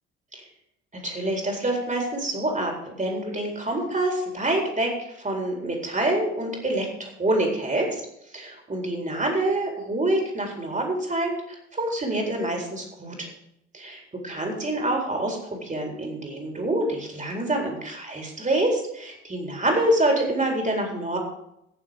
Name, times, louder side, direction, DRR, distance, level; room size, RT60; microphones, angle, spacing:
voice 1, 1.0-8.0 8.3-13.3 13.7-21.2, right 1 dB, 20° right, 1 dB, 4.1 m, -26 dB
16.0 x 7.2 x 5.2 m, 0.79 s
figure-of-eight pair, 50°, 33 cm